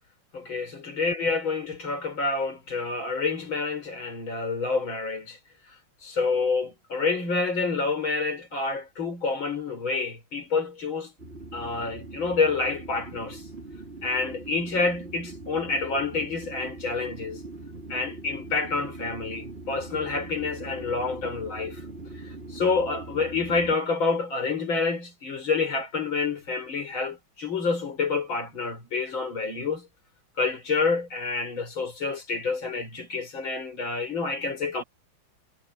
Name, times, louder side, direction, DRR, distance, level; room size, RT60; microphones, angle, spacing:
voice 1, 0.3-5.4 6.0-11.1 11.5-13.4 14.0-17.4 17.9-21.8 22.5-29.9 30.4-34.8, left 4 dB, 85° left, 6.0 m, -28 dB
sound 1, 11.2-23.7, right 2 dB, 30° right, 4.0 m, -41 dB
omnidirectional pair, 2.1 m